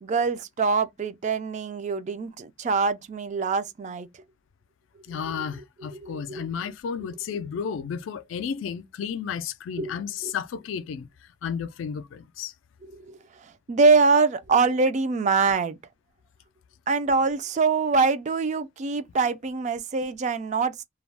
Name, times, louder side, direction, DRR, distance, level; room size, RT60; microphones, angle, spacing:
voice 1, 0.0-4.1 5.1-5.2 5.9-6.5 9.8-9.9 10.2-10.3 12.9-15.8 16.9-20.8, right 4 dB, 40° right, 0.3 m, -24 dB
voice 2, 5.0-12.5, left 7 dB, 85° left, 0.3 m, -33 dB
2.3 x 2.0 x 3.2 m
head